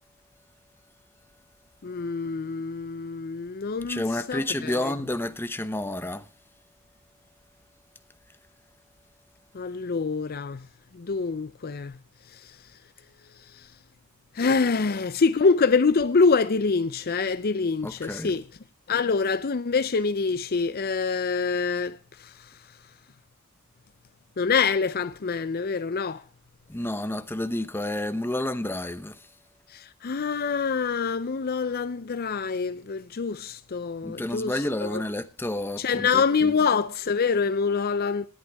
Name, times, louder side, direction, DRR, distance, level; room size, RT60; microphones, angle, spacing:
voice 1, 1.8-4.9 9.5-10.7 10.9-12.0 12.3-12.6 13.5-13.7 14.3-18.4 18.9-22.6 24.4-26.2 29.7-35.0 35.8-38.3, left 5 dB, 45° left, 0.5 m, -26 dB
voice 2, 3.9-6.3 17.8-18.3 26.7-29.3 34.0-36.5, left 1 dB, 10° left, 0.9 m, -30 dB
18.5 x 11.0 x 3.5 m
head